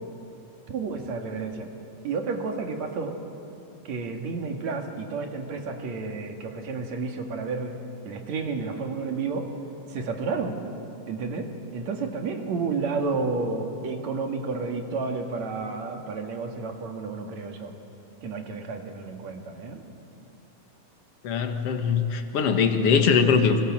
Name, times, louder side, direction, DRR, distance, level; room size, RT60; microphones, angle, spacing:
voice 1, 0.7-1.7 2.0-3.2 3.8-7.8 8.0-9.5 9.9-10.7 11.1-17.7 18.2-19.8, right 4 dB, 65° right, 4 dB, 3.2 m, -31 dB
voice 2, 21.2-23.6, left 6 dB, 55° left, 6 dB, 2.4 m, -21 dB
30.0 x 24.5 x 7.5 m, 2.8 s
omnidirectional pair, 3.4 m